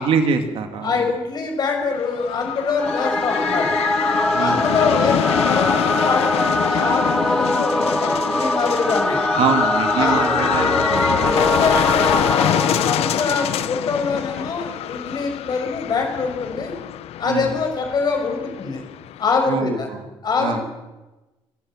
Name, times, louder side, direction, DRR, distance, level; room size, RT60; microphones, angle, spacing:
voice 1, 0.0-1.0 4.3-4.8 9.4-11.6 17.2-17.5 19.5-20.1 20.4-20.6, right 6 dB, 65° right, 6 dB, 2.6 m, -24 dB
voice 2, 0.8-3.8 4.4-9.2 10.0-10.2 11.0-16.7 17.2-18.8 19.2-19.9 20.2-20.6, left 5 dB, 40° left, 3 dB, 5.9 m, -24 dB
sound 1, 1.8-19.5, left 12 dB, 80° left, 0.7 m, -25 dB
Singing / Musical instrument, 2.8-14.1, left 1 dB, 5° left, 0.9 m, -22 dB
25.0 x 15.5 x 7.5 m, 1.1 s
cardioid pair, 155°, 10 cm